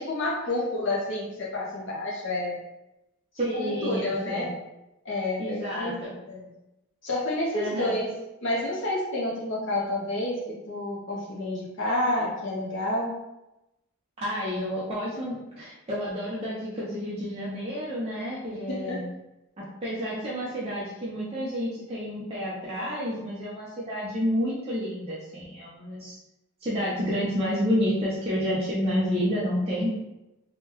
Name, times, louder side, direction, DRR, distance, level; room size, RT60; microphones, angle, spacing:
voice 1, 0.0-2.6 3.5-4.5 5.0-5.9 6.3-6.5 7.0-8.1 8.4-10.4 10.7-13.1 18.7-19.0, left 1 dB, 55° left, -5 dB, 0.6 m, -29 dB
voice 2, 3.4-4.5 5.4-6.1 7.5-7.9 14.2-19.0 19.6-26.2 26.6-29.9, equal, 25° right, -8 dB, 0.6 m, -29 dB
3.6 x 2.2 x 2.9 m, 0.94 s
head